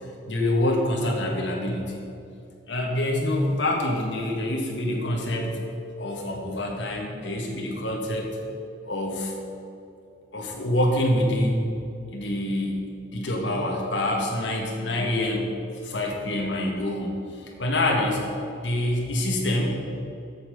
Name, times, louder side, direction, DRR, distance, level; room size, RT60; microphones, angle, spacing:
voice 1, 0.3-2.0 2.7-5.5 6.0-8.3 8.8-9.3 10.3-11.7 12.1-12.8 13.1-15.5 15.8-18.2 18.6-19.8, left 1 dB, 85° left, -1 dB, 1.7 m, -26 dB
8.4 x 7.3 x 6.5 m, 2.6 s
head